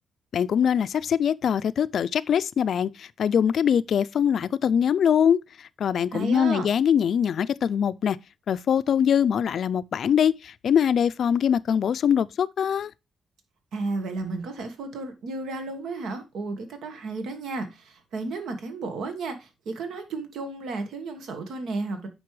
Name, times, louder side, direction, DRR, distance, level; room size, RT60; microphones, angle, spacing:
voice 1, 0.3-8.2 8.5-12.9, left 8 dB, 60° left, 0.3 m, -23 dB
voice 2, 6.1-6.7 13.7-22.1, right 3 dB, 85° right, 1.4 m, -33 dB
9.3 x 5.2 x 3.1 m
cardioid pair, 130°, 0 cm